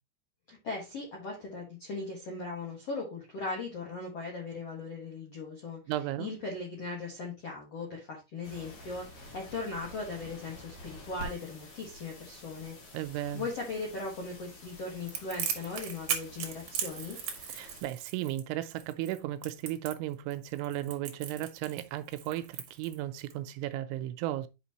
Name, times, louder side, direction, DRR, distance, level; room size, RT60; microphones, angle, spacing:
voice 1, 0.5-5.8 6.2-12.8 13.3-17.2, left 3 dB, 65° left, 1.5 m, -38 dB
voice 2, 5.9-6.3 12.9-13.5 17.5-24.5, right 14 dB, 85° right, 3.0 m, -35 dB
sound 1, 8.4-17.8, equal, 50° left, 2.8 m, -49 dB
Crackle, 15.1-23.3, right 8 dB, 65° right, 2.1 m, -38 dB
9.0 x 5.8 x 2.9 m
omnidirectional pair, 5.6 m